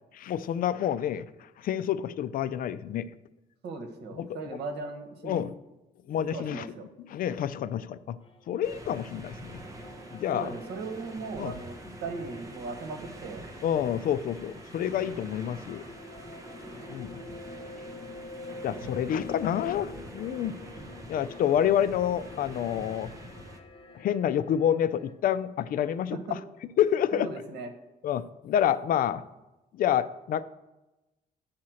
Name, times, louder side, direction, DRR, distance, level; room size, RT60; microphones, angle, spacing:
voice 1, 0.2-1.3 1.6-3.1 4.2-4.3 5.2-5.5 6.1-6.7 7.1-8.2 8.5-9.6 10.1-10.5 11.4-11.5 13.6-15.8 16.9-17.2 18.6-20.6 21.1-23.1 24.0-26.4 26.8-27.3 28.0-29.2 29.8-30.5, left 10 dB, 55° left, 14 dB, 0.4 m, -28 dB
voice 2, 3.6-5.5 6.1-6.9 10.3-13.4 19.1-19.2 26.3-26.4 27.1-27.7, right 3 dB, 80° right, 5 dB, 1.4 m, -38 dB
sound 1, 8.2-25.1, left 2 dB, 35° left, 0.9 m, -47 dB
sound 2, 8.6-23.6, right 1 dB, 20° right, 0.9 m, -46 dB
10.5 x 4.3 x 6.3 m, 1.0 s
cardioid pair, 160°, 17 cm